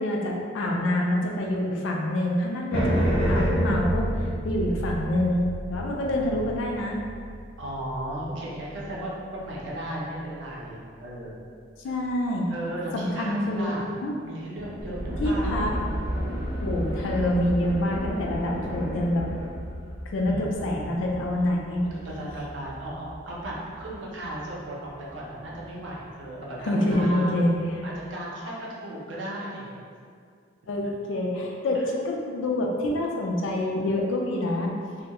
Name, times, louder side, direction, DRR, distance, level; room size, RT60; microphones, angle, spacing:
voice 1, 0.0-2.9 3.3-7.0 11.8-12.5 12.9-13.7 14.0-14.1 15.2-15.7 16.6-19.2 20.1-21.8 26.6-27.5 30.7-34.7, left 1 dB, 80° left, 0 dB, 0.4 m, -26 dB
sound 1, 2.7-9.2 14.6-19.5, equal, 65° left, 0.8 m, -30 dB
voice 2, 6.0-6.5 7.6-11.4 12.5-13.8 14.2-16.1 20.3-20.9 21.9-27.4 27.8-29.7 31.7-31.9, right 1 dB, 75° right, -4 dB, 0.5 m, -36 dB
sound 2, 14.8-26.6, equal, 15° right, 0.3 m, -36 dB
2.2 x 2.1 x 2.8 m, 2.2 s
head